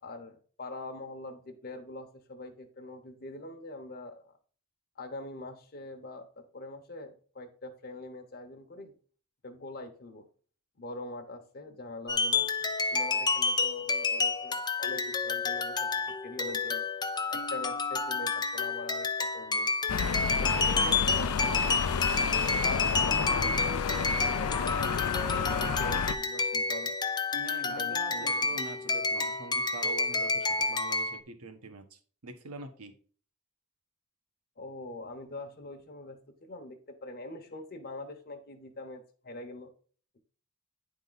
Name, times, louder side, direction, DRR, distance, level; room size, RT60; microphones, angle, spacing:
voice 1, 0.0-4.3 5.0-6.3 6.5-8.9 9.4-10.2 10.8-12.5 12.9-16.9 17.3-19.7 20.4-22.1 22.6-25.0 25.3-26.9 27.6-28.6 34.6-39.7, left 2 dB, 45° left, 4 dB, 1.0 m, -43 dB
sound 1, 12.1-31.2, left 4 dB, 20° left, 0.5 m, -30 dB
sound 2, 19.9-26.1, left 6 dB, 75° left, 0.5 m, -31 dB
voice 2, 27.3-32.9, right 3 dB, 80° right, 6 dB, 1.1 m, -44 dB
9.5 x 3.7 x 4.0 m, 0.42 s
head